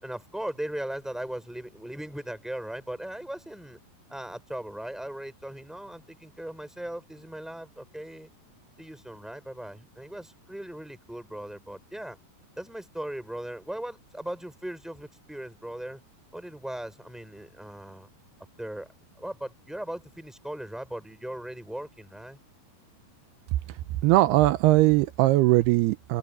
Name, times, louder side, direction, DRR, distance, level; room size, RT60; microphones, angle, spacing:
voice 1, 0.0-3.8 4.1-8.3 8.8-12.2 12.6-16.0 16.3-18.1 18.6-18.9 19.2-22.4, right 1 dB, ahead, 6.1 m, -38 dB
voice 2, 24.0-26.2, right 17 dB, 85° right, 2.5 m, -20 dB
open air
omnidirectional pair, 4.9 m